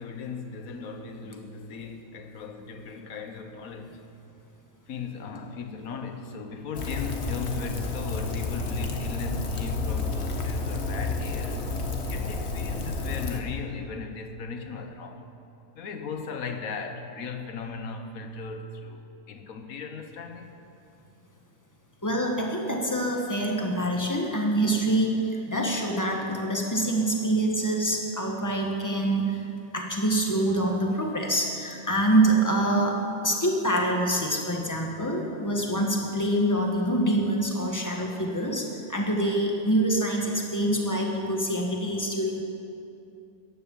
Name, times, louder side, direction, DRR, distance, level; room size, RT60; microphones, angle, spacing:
voice 1, 0.0-4.0 4.9-11.6 12.1-15.3 15.7-20.5, left 5 dB, 75° left, 6 dB, 1.5 m, -37 dB
Rain, 6.7-13.4, left 3 dB, 50° left, 1.5 m, -30 dB
voice 2, 22.0-29.5 29.7-42.4, right 1 dB, 15° left, 0 dB, 1.7 m, -25 dB
14.5 x 10.5 x 7.3 m, 2.7 s
omnidirectional pair, 1.5 m